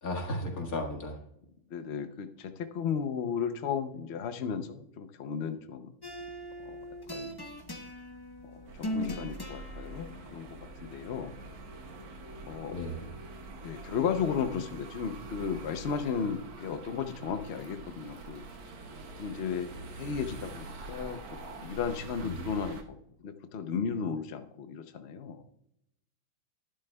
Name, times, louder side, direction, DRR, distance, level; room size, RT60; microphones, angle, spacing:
voice 1, 0.0-1.2 12.7-13.1, left 1 dB, 50° left, 2 dB, 2.1 m, -34 dB
voice 2, 1.7-5.9 6.7-6.8 7.1-7.3 8.5-11.3 12.4-12.7 13.6-18.5 19.2-23.0 23.2-25.4, left 6 dB, 75° left, 8 dB, 0.6 m, -34 dB
sound 1, 6.0-12.7, left 1 dB, 30° left, 0.4 m, -41 dB
sound 2, 8.6-22.8, right 3 dB, 90° right, 2.0 m, -45 dB
12.5 x 11.0 x 2.3 m, 0.77 s
omnidirectional pair, 2.1 m